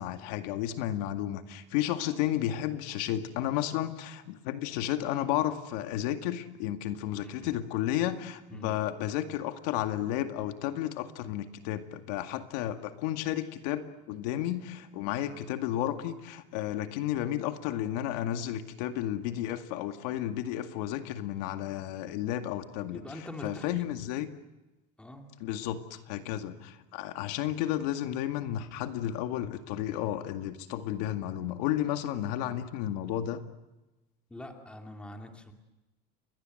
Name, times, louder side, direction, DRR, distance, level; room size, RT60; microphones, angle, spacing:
voice 1, 0.0-23.0 23.4-24.3 25.4-33.4, left 12 dB, 90° left, 8 dB, 2.1 m, -32 dB
voice 2, 7.2-7.5 8.5-8.8 22.9-23.8 25.0-25.3 34.3-35.5, left 1 dB, 5° left, 4 dB, 2.6 m, -44 dB
29.5 x 22.5 x 7.8 m, 1.1 s
cardioid pair, 170°, 20 cm